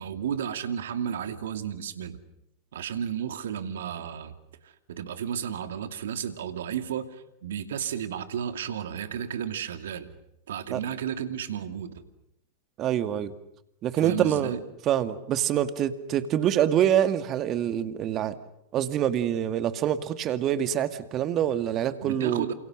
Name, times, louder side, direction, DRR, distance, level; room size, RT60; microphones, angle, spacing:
voice 1, 0.0-2.2 2.7-4.4 4.6-10.1 10.5-12.0 14.0-14.6 22.0-22.5, right 8 dB, 70° right, 9 dB, 2.5 m, -33 dB
voice 2, 12.8-13.3 13.8-14.6 14.9-18.4 18.7-22.5, right 10 dB, 40° right, 10 dB, 2.0 m, -25 dB
29.0 x 27.5 x 6.5 m, 0.82 s
hypercardioid pair, 95°, 0 cm